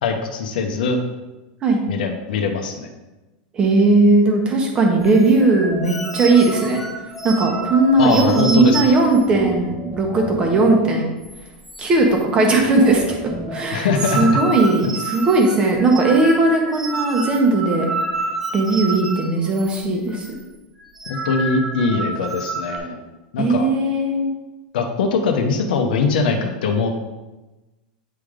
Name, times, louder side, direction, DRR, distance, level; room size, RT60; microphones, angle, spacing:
voice 1, 0.0-1.0 1.9-2.9 8.0-8.8 13.7-14.2 14.8-14.9 21.2-23.0 23.3-23.7 24.7-26.9, left 4 dB, 80° left, 4 dB, 0.8 m, -21 dB
voice 2, 3.5-6.8 7.2-11.1 11.8-13.9 14.1-17.9 18.5-20.3 23.4-24.3, right 2 dB, 20° right, 2 dB, 0.9 m, -17 dB
sound 1, 5.0-11.0 11.2-11.4 11.7-12.2 12.5-19.8 20.1-20.3 20.8-22.8, right 3 dB, 5° right, 0.5 m, -29 dB
8.8 x 3.3 x 3.7 m, 1.1 s
supercardioid pair, 165°, 5 cm